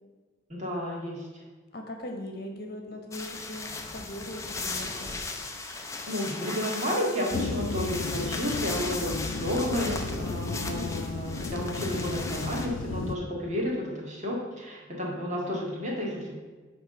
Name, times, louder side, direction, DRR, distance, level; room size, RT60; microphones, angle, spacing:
voice 1, 0.5-1.4 6.1-16.4, equal, 35° right, -2 dB, 1.9 m, -31 dB
voice 2, 1.7-5.2, left 1 dB, 50° left, 3 dB, 1.2 m, -40 dB
sound 1, 3.1-12.7, left 3 dB, 15° left, 0.6 m, -37 dB
sound 2, 7.3-13.2, left 3 dB, 85° left, 0.5 m, -34 dB
9.6 x 3.5 x 6.8 m, 1.3 s
head